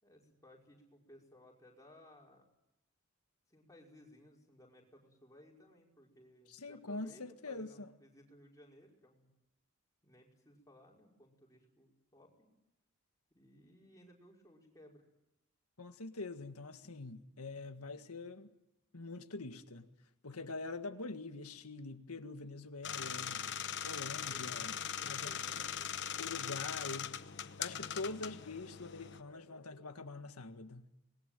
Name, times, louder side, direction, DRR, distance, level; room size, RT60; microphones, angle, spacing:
voice 1, 0.0-2.5 3.5-9.3 10.0-12.5 13.3-15.0 24.2-26.2, equal, 15° left, 5.4 m, -60 dB
voice 2, 6.5-7.9 15.8-18.5 18.9-19.9 20.2-23.5 23.8-25.7 26.2-27.2 27.6-30.9, left 3 dB, 85° left, 1.8 m, -44 dB
sound 1, 22.8-29.2, left 8 dB, 50° left, 1.0 m, -40 dB
26.0 x 21.0 x 9.2 m
head